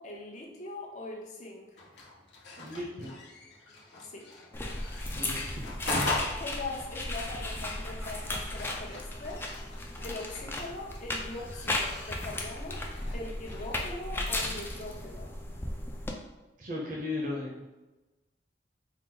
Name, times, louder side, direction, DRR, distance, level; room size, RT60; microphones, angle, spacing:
voice 1, 0.0-1.8 4.0-4.3 6.4-9.5 10.0-12.9 13.1-15.3, left 2 dB, 45° left, -1 dB, 0.7 m, -41 dB
sound 1, 1.8-13.8, left 2 dB, 70° left, 0.9 m, -41 dB
voice 2, 2.6-3.1 5.1-5.5 16.6-17.6, left 2 dB, 50° right, -3 dB, 0.7 m, -36 dB
sound 2, 4.5-16.1, left 1 dB, 15° left, 0.4 m, -35 dB
4.5 x 2.0 x 3.8 m, 1.1 s
head